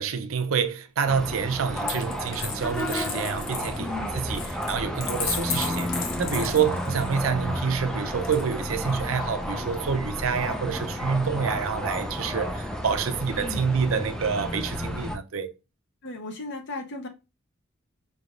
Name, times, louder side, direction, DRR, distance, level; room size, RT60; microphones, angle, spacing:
voice 1, 0.0-15.5, right 6 dB, 85° right, 0.5 m, -28 dB
sound 1, 1.1-15.2, equal, 5° left, 0.5 m, -32 dB
Coin (dropping), 1.8-7.2 8.2-9.0, left 6 dB, 90° left, 1.0 m, -35 dB
voice 2, 3.8-4.1 13.4-13.6 16.0-17.1, left 2 dB, 60° left, 0.8 m, -35 dB
4.9 x 3.3 x 2.5 m
head